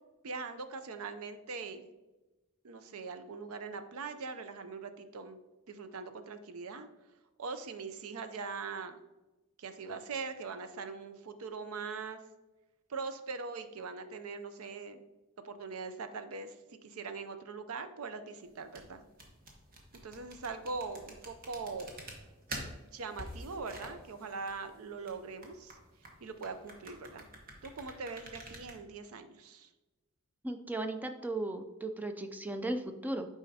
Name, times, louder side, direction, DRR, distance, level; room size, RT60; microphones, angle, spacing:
voice 1, 0.2-1.9 2.6-5.4 5.7-6.9 7.4-9.0 9.6-12.2 12.9-15.0 15.4-19.0 20.0-21.9 22.8-25.8 26.2-27.3 27.6-29.7, right 4 dB, 70° right, 9 dB, 0.5 m, -41 dB
sound 1, 18.5-28.8, right 1 dB, 40° right, 1.1 m, -48 dB
voice 2, 30.4-33.3, right 2 dB, 10° right, 7 dB, 0.4 m, -36 dB
8.4 x 4.9 x 2.8 m, 1.1 s
head